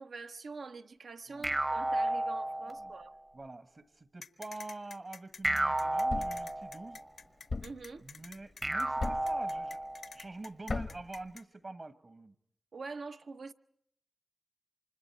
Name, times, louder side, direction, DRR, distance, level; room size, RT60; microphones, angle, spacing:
voice 1, 0.0-3.1 7.6-8.1 12.7-13.5, right 4 dB, 90° right, 0.8 m, -45 dB
sound 1, 1.4-3.1 5.4-7.0 8.6-10.1, right 1 dB, 35° right, 0.8 m, -32 dB
voice 2, 3.3-7.0 8.0-9.9 10.1-12.3, right 2 dB, 50° right, 1.3 m, -46 dB
sound 2, 4.2-11.4, left 4 dB, 90° left, 1.0 m, -49 dB
Thump thud, 6.1-6.5 7.5-7.9 9.0-9.4 10.7-11.1, left 3 dB, 65° left, 0.8 m, -36 dB
28.5 x 25.0 x 4.6 m
cardioid pair, 50°, 0 cm